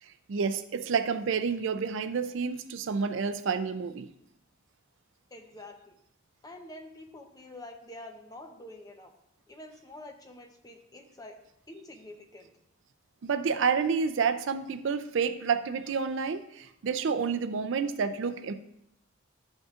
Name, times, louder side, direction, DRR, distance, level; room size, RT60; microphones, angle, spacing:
voice 1, 0.3-4.1 13.2-18.5, right 5 dB, 60° right, 10 dB, 0.4 m, -29 dB
voice 2, 5.3-6.0 6.4-9.1 9.5-11.4 11.7-12.5, left 1 dB, 20° left, 4 dB, 0.7 m, -47 dB
12.0 x 5.3 x 2.4 m, 0.80 s
head